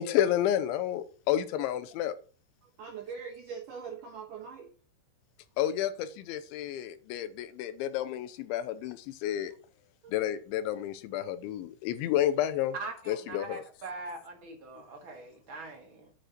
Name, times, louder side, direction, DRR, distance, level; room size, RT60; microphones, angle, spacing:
voice 1, 0.0-2.1 5.6-5.9 6.3-9.0 9.2-9.5 10.1-12.7 13.1-13.6, left 11 dB, 85° left, 3.1 m, -30 dB
voice 2, 2.6-4.7 8.5-8.6 10.0-10.1, right 6 dB, 70° right, 2.0 m, -42 dB
voice 3, 12.7-16.1, right 3 dB, 35° right, 2.1 m, -42 dB
8.9 x 7.7 x 6.2 m
omnidirectional pair, 5.5 m